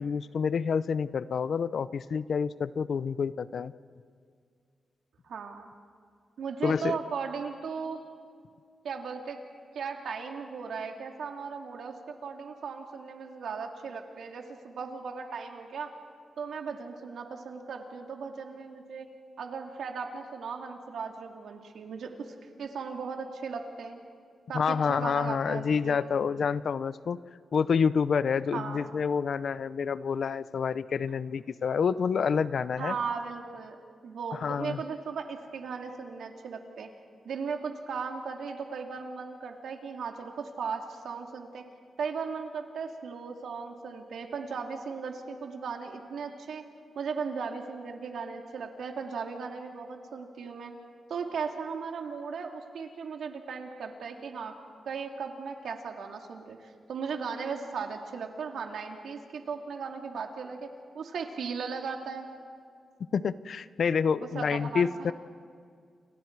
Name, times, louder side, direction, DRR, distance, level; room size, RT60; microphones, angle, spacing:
voice 1, 0.0-3.7 6.6-7.0 24.5-27.2 27.5-33.0 34.3-34.8 63.1-65.1, left 6 dB, 60° left, 16 dB, 0.6 m, -28 dB
voice 2, 5.2-5.7 6.4-8.0 8.8-9.4 9.7-15.9 16.4-19.1 19.4-24.0 24.5-26.0 28.5-28.9 32.8-33.8 34.0-36.9 37.2-41.6 42.0-46.6 46.9-50.7 51.1-54.5 54.9-60.7 60.9-62.3 64.2-65.1, right 5 dB, 80° right, 3 dB, 2.6 m, -37 dB
29.5 x 28.5 x 4.7 m, 2.1 s
wide cardioid pair, 130°, 0 cm